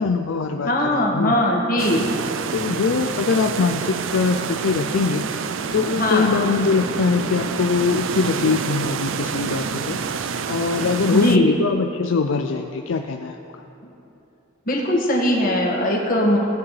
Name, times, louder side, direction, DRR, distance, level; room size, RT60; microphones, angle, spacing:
voice 1, 0.0-1.3 2.5-5.2 5.7-10.0 10.5-13.4, left 4 dB, 75° left, 5 dB, 0.4 m, -22 dB
voice 2, 0.6-2.1 5.9-6.3 11.1-11.6 14.7-16.4, left 1 dB, 45° left, -1 dB, 1.7 m, -20 dB
sound 1, 1.8-11.4, right 5 dB, 75° right, 0.5 m, -28 dB
17.5 x 8.3 x 3.3 m, 2.9 s
head